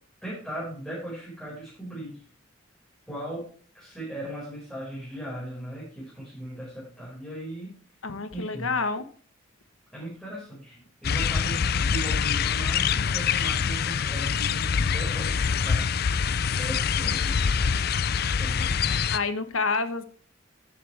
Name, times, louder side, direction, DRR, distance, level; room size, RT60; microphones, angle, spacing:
voice 1, 0.2-2.2 3.1-3.4 3.7-7.7 8.3-8.7 9.9-18.1 18.4-18.8, right 1 dB, 5° left, -9 dB, 5.1 m, -38 dB
voice 2, 8.0-9.1 19.1-20.0, left 4 dB, 90° left, 10 dB, 1.2 m, -28 dB
sound 1, 11.0-19.2, left 6 dB, 50° left, 0.5 m, -25 dB
12.0 x 8.6 x 3.3 m, 0.44 s
head